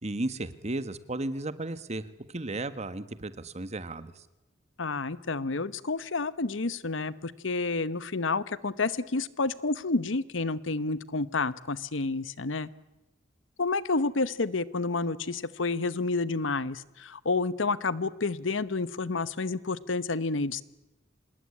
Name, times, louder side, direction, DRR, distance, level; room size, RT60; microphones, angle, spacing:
voice 1, 0.0-4.2, right 2 dB, 35° right, 13 dB, 1.4 m, -34 dB
voice 2, 4.8-12.7 13.6-20.6, left 3 dB, 90° left, 17 dB, 1.0 m, -30 dB
26.0 x 20.0 x 9.9 m, 0.99 s
head